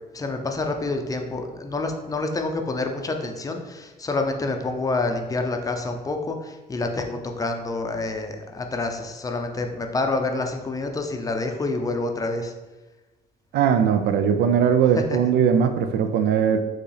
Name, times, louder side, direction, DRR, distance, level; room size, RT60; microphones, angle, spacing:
voice 1, 0.1-12.5, left 2 dB, 20° left, 4 dB, 0.5 m, -27 dB
voice 2, 13.5-16.6, right 7 dB, 75° right, 8 dB, 0.4 m, -20 dB
4.6 x 3.0 x 3.2 m, 1.2 s
cardioid pair, 110°, 17 cm